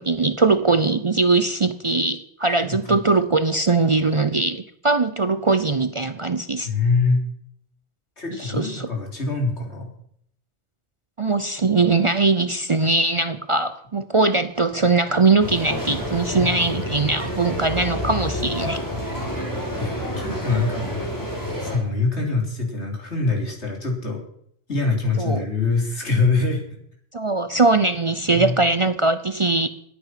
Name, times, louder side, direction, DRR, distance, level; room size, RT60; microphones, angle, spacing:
voice 1, 0.0-6.7 8.3-8.9 11.2-18.8 25.2-25.4 27.1-29.7, right 3 dB, 35° right, 12 dB, 0.6 m, -21 dB
voice 2, 2.5-3.0 6.6-7.2 8.2-9.9 16.3-16.5 19.8-20.8 21.6-24.2 24.7-26.6 28.3-28.5, left 3 dB, 85° left, 1 dB, 3.9 m, -24 dB
sound 1, 15.4-21.8, equal, 15° left, 4.4 m, -28 dB
20.5 x 9.1 x 5.8 m, 0.70 s
omnidirectional pair, 1.1 m